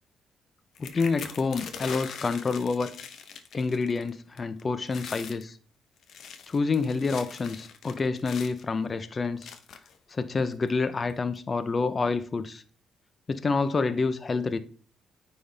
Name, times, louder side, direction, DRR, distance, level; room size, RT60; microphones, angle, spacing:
sound 1, 0.8-4.1 4.4-4.6 4.9-5.4 6.0-8.6 9.4-10.0 10.7-10.8 11.1-11.4, left 7 dB, 65° left, 0.8 m, -42 dB
voice 1, 0.8-2.9 3.5-5.6 6.5-9.5 10.1-12.6 13.3-14.6, left 4 dB, 35° left, 0.6 m, -28 dB
9.5 x 3.8 x 3.4 m
cardioid pair, 90°, 0 cm